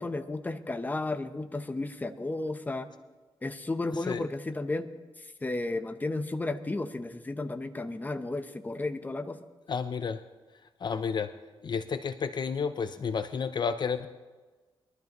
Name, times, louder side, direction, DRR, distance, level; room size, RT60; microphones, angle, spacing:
voice 1, 0.0-2.9 3.4-4.9 5.4-9.4, left 2 dB, 20° left, 8 dB, 0.8 m, -33 dB
voice 2, 9.7-10.2 10.8-11.3 11.6-14.1, left 6 dB, 50° left, 10 dB, 0.6 m, -31 dB
22.0 x 13.0 x 3.0 m, 1.3 s
cardioid pair, 95°, 9 cm